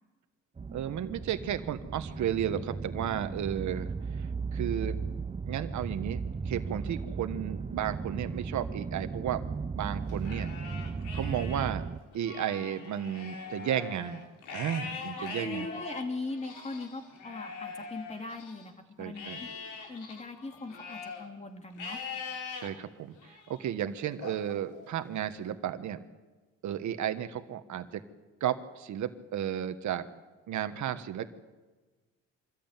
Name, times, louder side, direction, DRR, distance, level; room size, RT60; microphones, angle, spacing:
sound 1, 0.6-12.0, right 5 dB, 20° right, 0.7 m, -36 dB
voice 1, 0.7-5.0 5.4-9.4 9.7-10.5 11.1-11.8 12.1-15.7 19.0-19.4 22.6-26.0 26.6-28.0 28.4-30.1 30.5-31.4, right 10 dB, 70° right, 9 dB, 1.4 m, -33 dB
Livestock farm animals working animals, 10.1-11.7 12.1-18.7 19.2-21.3 21.8-22.7 23.2-23.7 24.2-25.3, left 5 dB, 85° left, 3.4 m, -42 dB
voice 2, 15.2-18.7 19.0-19.5 19.9-22.0, left 3 dB, 20° left, 4 dB, 2.9 m, -39 dB
25.0 x 13.5 x 9.1 m, 1.3 s
cardioid pair, 90°, 30 cm